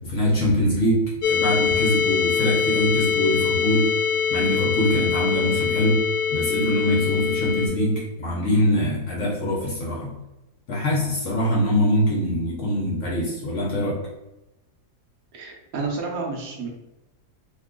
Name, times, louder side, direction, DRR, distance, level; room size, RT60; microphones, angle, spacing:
voice 1, 0.0-3.9 4.3-6.0 6.3-10.1 10.7-14.0, equal, 60° left, -4 dB, 0.9 m, -23 dB
sound 1, 1.2-7.7, left 7 dB, 90° left, 1.2 m, -23 dB
voice 2, 15.3-16.7, right 4 dB, 70° right, 0 dB, 1.0 m, -30 dB
2.9 x 2.3 x 3.7 m, 0.98 s
omnidirectional pair, 1.7 m